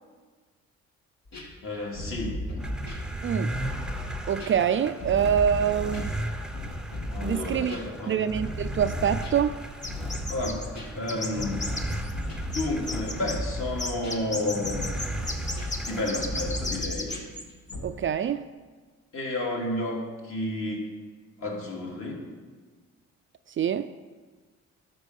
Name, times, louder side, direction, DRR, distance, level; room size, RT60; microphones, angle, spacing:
sound 1, 1.3-4.6 5.0-17.8, left 1 dB, 65° left, 2.5 m, -35 dB
voice 1, 1.6-2.4 7.1-8.2 10.3-11.7 12.4-14.9 15.8-17.1 19.1-20.9 21.4-22.2, left 1 dB, 45° left, -1 dB, 2.4 m, -31 dB
sound 2, 2.6-16.8, right 1 dB, 5° right, 0.7 m, -38 dB
voice 2, 3.2-3.5 4.3-6.1 7.2-7.8 8.1-9.6 17.8-18.4 23.6-23.9, right 8 dB, 40° right, 11 dB, 0.4 m, -25 dB
sound 3, 9.8-10.7 11.1-12.2 12.5-13.4 13.8-17.4 17.7-17.8, left 2 dB, 25° left, 1.1 m, -34 dB
12.5 x 4.6 x 6.5 m, 1.4 s
cardioid pair, 90°, 30 cm